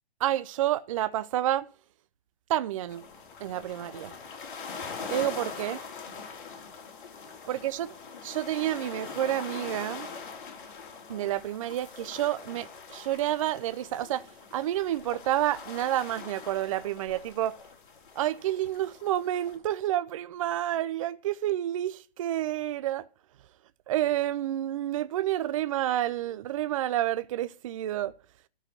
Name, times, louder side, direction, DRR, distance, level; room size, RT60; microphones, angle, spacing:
voice 1, 0.2-1.7 2.5-3.0 3.4-4.1 5.1-5.8 7.5-7.9 8.2-10.1 11.1-17.6 18.2-23.1 23.9-28.1, right 13 dB, 35° right, 0.5 m, -29 dB
sound 1, 2.9-19.6, left 5 dB, 50° left, 2.6 m, -43 dB
13.0 x 4.6 x 6.0 m
hypercardioid pair, 135°, 32 cm